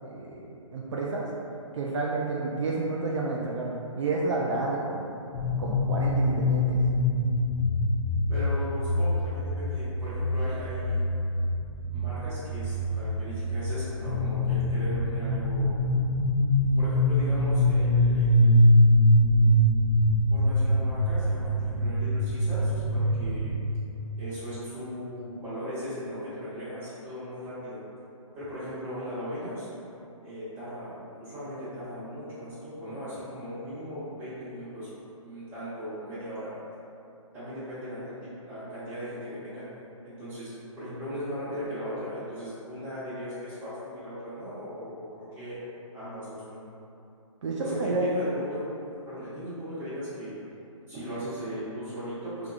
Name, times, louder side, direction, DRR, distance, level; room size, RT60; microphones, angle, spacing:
voice 1, 0.0-1.3 1.7-5.1 5.6-6.8 47.4-48.0, right 3 dB, 60° right, -3 dB, 0.4 m, -30 dB
sound 1, 5.3-23.6, left 1 dB, 55° left, 0.6 m, -24 dB
voice 2, 8.3-11.0 11.9-15.7 16.8-18.8 20.3-23.6 24.2-27.8 28.3-29.7 30.2-34.9 35.2-36.5 37.3-39.7 40.0-45.6 45.9-46.6 47.6-48.8 49.0-50.4 50.9-52.5, equal, 10° right, -15 dB, 1.2 m, -38 dB
3.3 x 2.3 x 2.5 m, 2.7 s
figure-of-eight pair, 140°, 17 cm